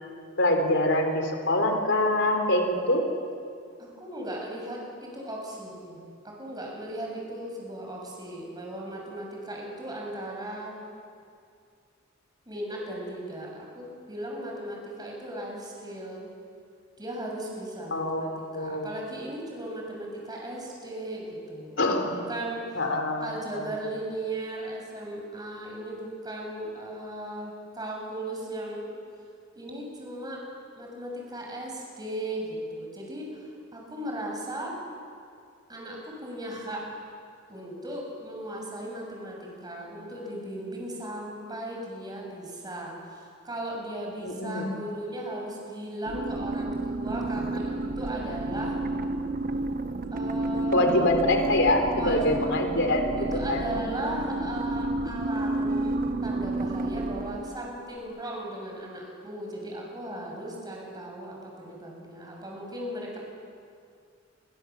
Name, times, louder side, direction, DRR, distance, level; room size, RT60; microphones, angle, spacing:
voice 1, 0.4-3.0 17.9-18.3 18.5-18.9 21.8-22.1 22.7-23.3 23.6-23.7 44.2-44.6 50.7-53.7, left 1 dB, 60° left, 4 dB, 4.1 m, -24 dB
voice 2, 3.8-6.0 6.2-10.8 12.5-16.3 17.0-18.3 18.5-22.8 23.2-28.9 29.6-30.4 30.8-33.5 33.7-34.7 35.7-36.8 37.5-48.8 50.1-51.1 51.9-52.2 53.3-63.2, right 1 dB, 20° right, -2 dB, 7.0 m, -37 dB
sound 1, 46.1-57.8, right 2 dB, 45° right, 1.1 m, -31 dB
29.0 x 24.5 x 7.3 m, 2.3 s
head